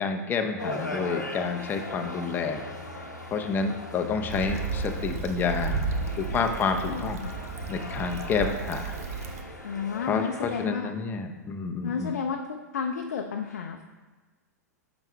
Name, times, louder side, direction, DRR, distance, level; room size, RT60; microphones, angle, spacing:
voice 1, 0.0-2.6 3.3-5.9 6.2-7.2 7.7-9.0 10.0-12.1, left 5 dB, 20° left, 5 dB, 0.6 m, -29 dB
sound 1, 0.6-10.7, left 1 dB, 90° left, 0.8 m, -39 dB
Stream / Traffic noise roadway noise / Trickle dribble, 4.3-9.4, right 5 dB, 60° right, 0.7 m, -33 dB
voice 2, 6.8-7.3 9.6-10.9 11.8-13.8, left 6 dB, 65° left, 3 dB, 0.5 m, -32 dB
8.9 x 6.0 x 2.2 m, 1.3 s
figure-of-eight pair, 100°, 9 cm